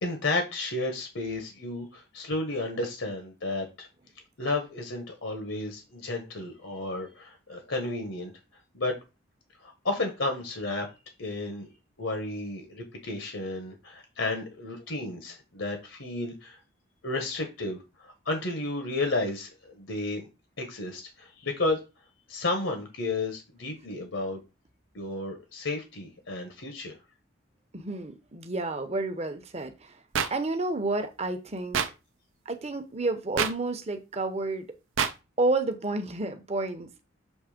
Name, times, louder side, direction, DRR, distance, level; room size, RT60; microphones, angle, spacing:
voice 1, 0.0-3.9 4.4-8.3 8.7-9.0 9.6-10.9 11.2-11.7 12.0-16.6 17.0-20.3 20.6-21.8 22.3-24.4 24.9-27.0, left 2 dB, 75° left, 1.4 m, -32 dB
voice 2, 27.7-30.0 30.3-31.8 32.4-34.7 35.4-37.0, right 2 dB, 30° right, 0.8 m, -30 dB
sound 1, 30.1-30.3 31.7-31.9 33.4-33.5 35.0-35.1, right 7 dB, 80° right, 0.6 m, -25 dB
7.2 x 3.2 x 5.1 m
head